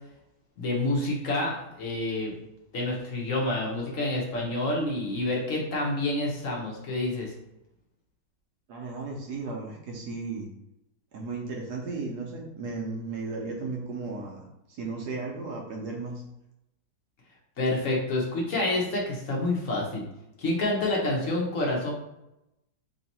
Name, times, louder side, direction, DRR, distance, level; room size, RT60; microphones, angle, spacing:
voice 1, 0.6-2.3 2.7-7.3 17.6-20.1 20.4-21.9, left 2 dB, 50° left, -2 dB, 1.0 m, -28 dB
voice 2, 8.7-10.5 11.1-16.2, right 3 dB, 65° right, -1 dB, 1.1 m, -35 dB
3.5 x 2.9 x 4.1 m, 0.87 s
omnidirectional pair, 2.3 m